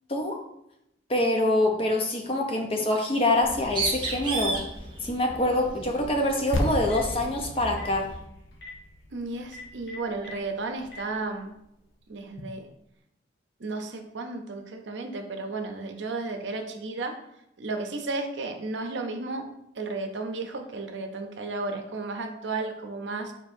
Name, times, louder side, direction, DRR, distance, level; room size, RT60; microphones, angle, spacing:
voice 1, 1.1-4.6 5.0-8.1, left 1 dB, 30° left, 2 dB, 0.6 m, -25 dB
Bird, 3.4-8.2, right 3 dB, 25° right, 0.8 m, -35 dB
sound 1, 6.5-11.0, left 1 dB, 75° left, 0.7 m, -34 dB
Telephone, 6.9-7.1 7.7-7.9 8.5-8.7 9.4-10.3 10.8-11.0, left 3 dB, 60° left, 1.6 m, -44 dB
voice 2, 9.1-11.5 12.1-12.6 13.6-17.2 17.6-19.5 19.8-23.3, right 3 dB, 70° right, 5 dB, 0.6 m, -33 dB
4.5 x 4.4 x 2.6 m, 0.80 s
head